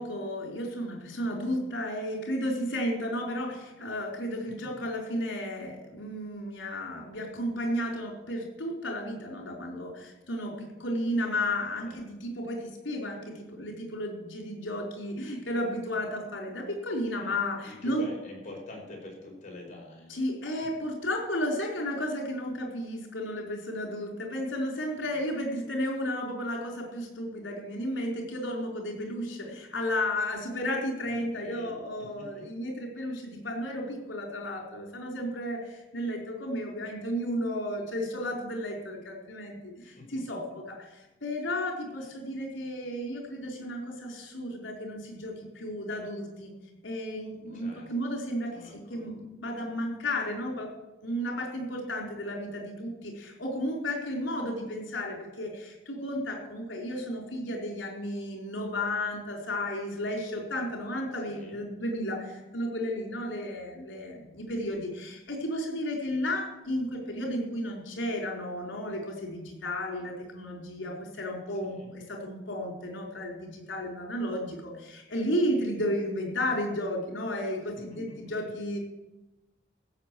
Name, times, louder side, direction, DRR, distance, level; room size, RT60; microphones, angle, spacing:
voice 1, 0.0-18.1 20.1-40.9 41.2-46.5 46.8-50.7 51.0-78.8, left 1 dB, 75° left, 0 dB, 4.1 m, -33 dB
voice 2, 17.6-20.1 20.5-20.6 25.1-25.3 31.1-31.7 32.0-32.4 39.8-40.2 47.5-47.9 48.5-49.0 61.2-61.6 71.5-71.9 77.9-78.3, left 2 dB, 40° left, -1 dB, 5.1 m, -46 dB
15.0 x 6.8 x 8.2 m, 1.0 s
head